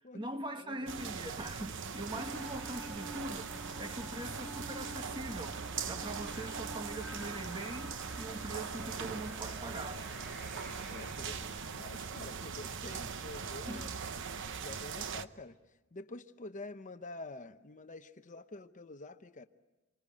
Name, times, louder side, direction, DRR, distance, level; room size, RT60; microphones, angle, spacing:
voice 1, 0.1-3.5 3.8-5.6 5.8-10.0 13.7-13.9, right 1 dB, 20° right, 1.3 m, -42 dB
sound 1, 0.9-15.2, right 5 dB, 55° right, 0.9 m, -41 dB
sound 2, 2.1-11.4, left 1 dB, ahead, 2.3 m, -50 dB
voice 2, 10.9-14.0 14.6-15.6 15.9-19.5, left 2 dB, 35° left, 0.9 m, -48 dB
28.0 x 24.5 x 8.6 m
head